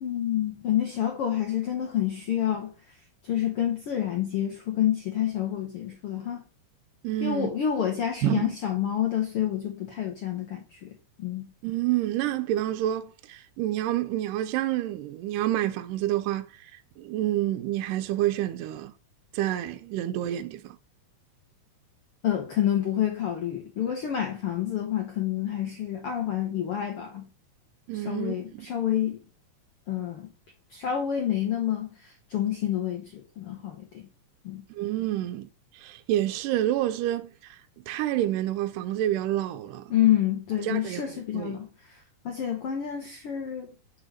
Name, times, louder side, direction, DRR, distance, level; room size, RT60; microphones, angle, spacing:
voice 1, 0.0-2.7 3.2-6.4 7.2-10.9 11.2-11.5 22.2-27.3 27.9-29.2 29.9-30.3 30.7-34.1 34.4-34.6 39.9-43.7, left 10 dB, 75° left, 1.3 m, -28 dB
voice 2, 7.0-7.5 8.2-8.5 11.6-18.9 19.3-20.8 27.9-28.7 34.7-37.6 37.9-39.9 40.6-41.0 41.3-41.6, right 13 dB, 85° right, 2.1 m, -28 dB
6.0 x 4.6 x 6.4 m
omnidirectional pair, 3.8 m